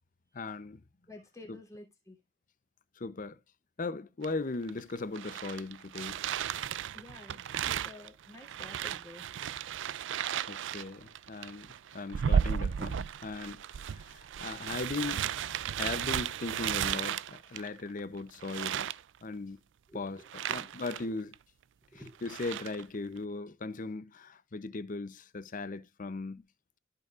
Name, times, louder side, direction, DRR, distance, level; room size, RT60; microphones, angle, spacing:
voice 1, 0.3-0.8 3.0-3.4 3.8-6.2 10.5-15.3 15.8-18.9 19.2-19.6 19.9-20.2 20.5-21.3 22.2-26.4, left 3 dB, 45° left, 0.6 m, -38 dB
voice 2, 1.1-2.2 6.9-9.3 19.9-20.7 21.1-21.2 21.9-22.2, left 1 dB, 15° left, 3.0 m, -51 dB
sound 1, 4.2-4.3 4.7-18.0 18.4-19.0 20.3-21.0 21.3-21.4 22.1-22.8, right 8 dB, 70° right, 0.4 m, -34 dB
14.5 x 5.5 x 2.4 m
head